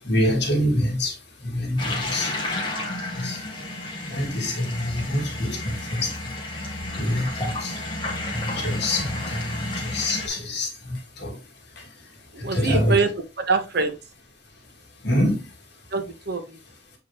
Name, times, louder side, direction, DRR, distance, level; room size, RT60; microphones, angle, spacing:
voice 1, 0.0-1.1 1.4-2.3 3.2-3.4 4.1-6.1 7.0-7.7 8.3-11.4 11.8-11.9 12.4-13.0 15.0-15.4, left 1 dB, 60° left, 2.3 m, -25 dB
sound 1, 1.8-10.3, left 2 dB, 25° left, 2.1 m, -32 dB
sound 2, 4.7-10.3, left 1 dB, 90° left, 2.5 m, -41 dB
voice 2, 12.3-13.1 13.4-13.9 15.9-16.6, right 4 dB, 55° right, 1.4 m, -24 dB
8.1 x 4.8 x 3.2 m
head